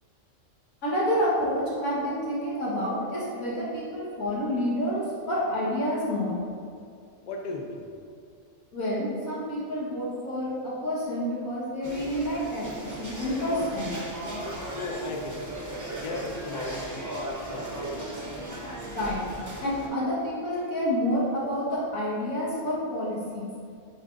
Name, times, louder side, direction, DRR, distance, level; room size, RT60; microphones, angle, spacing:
voice 1, 0.8-6.3 8.7-14.0 18.8-19.2 19.6-23.5, equal, 85° left, -7 dB, 1.9 m, -29 dB
voice 2, 7.3-7.9 14.7-15.6 16.0-17.1 17.4-18.1, left 2 dB, 50° left, 1 dB, 0.5 m, -36 dB
sound 1, 11.8-19.9, right 1 dB, 20° right, 0.5 m, -36 dB
8.8 x 4.1 x 2.6 m, 2.3 s
omnidirectional pair, 1.4 m